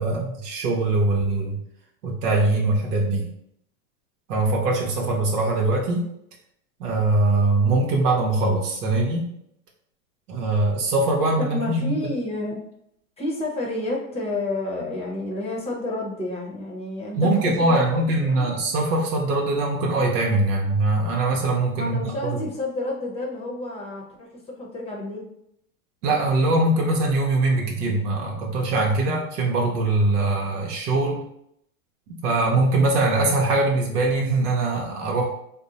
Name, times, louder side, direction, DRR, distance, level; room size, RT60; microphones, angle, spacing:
voice 1, 0.0-1.6 2.0-3.3 4.3-6.0 6.8-9.3 10.3-12.1 17.1-22.1 26.0-31.2 32.2-35.3, right 2 dB, 90° right, -1 dB, 0.9 m, -22 dB
voice 2, 11.4-12.6 13.2-17.3 17.6-18.5 21.7-25.3, left 2 dB, 15° left, -2 dB, 0.7 m, -30 dB
2.6 x 2.1 x 3.9 m, 0.74 s
hypercardioid pair, 125°, 44 cm